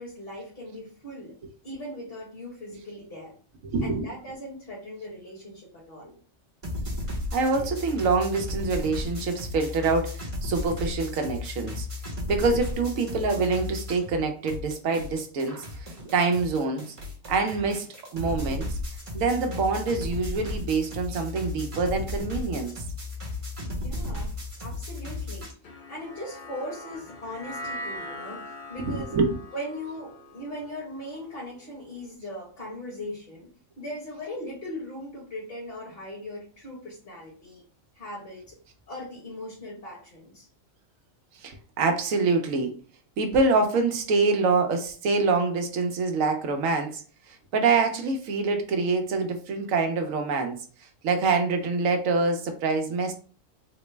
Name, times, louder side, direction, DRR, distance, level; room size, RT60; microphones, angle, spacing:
voice 1, 0.0-1.4 1.6-3.3 3.8-6.2 23.6-24.3 24.6-25.5 25.9-29.1 29.5-33.5 33.8-37.6 37.9-38.6 38.9-40.5, left 1 dB, 40° left, 1.3 m, -39 dB
voice 2, 3.6-4.0 7.3-11.9 12.3-16.9 17.3-18.7 19.1-22.7 28.9-29.4 41.4-42.8 43.2-50.6 51.0-53.1, right 4 dB, 80° right, 1.1 m, -25 dB
sound 1, 6.6-14.2 14.5-25.5, left 2 dB, 30° right, 0.8 m, -34 dB
sound 2, 25.6-32.0, left 1 dB, 60° left, 0.5 m, -41 dB
3.9 x 2.0 x 3.2 m
omnidirectional pair, 1.4 m